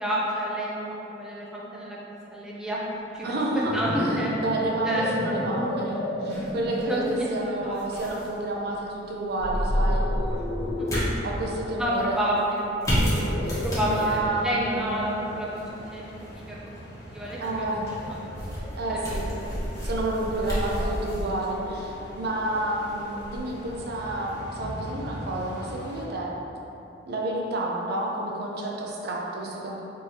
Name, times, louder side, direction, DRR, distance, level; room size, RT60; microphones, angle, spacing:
voice 1, 0.0-2.0 2.3-2.8 3.1-4.3 4.8-5.0 6.3-6.4 6.8-7.8 10.9-11.2 11.8-12.6 13.1-13.2 13.6-15.6 15.9-16.1 16.5-16.6 17.1-17.7 18.1-18.3 18.9-19.2, equal, 5° right, -6 dB, 0.5 m, -29 dB
voice 2, 3.2-7.0 7.3-10.1 10.9-12.2 13.9-14.9 17.4-17.9 18.8-19.3 19.8-26.3 27.1-29.8, right 2 dB, 60° right, -2 dB, 0.5 m, -30 dB
sound 1, 3.3-7.0 7.6-7.9 9.7-11.2 12.9-14.3, left 1 dB, 35° left, 0.7 m, -32 dB
sound 2, 6.3-24.4, equal, 20° left, 1.1 m, -32 dB
sound 3, 13.8-26.1, equal, 65° left, 0.8 m, -41 dB
4.4 x 3.3 x 2.7 m, 3.0 s
head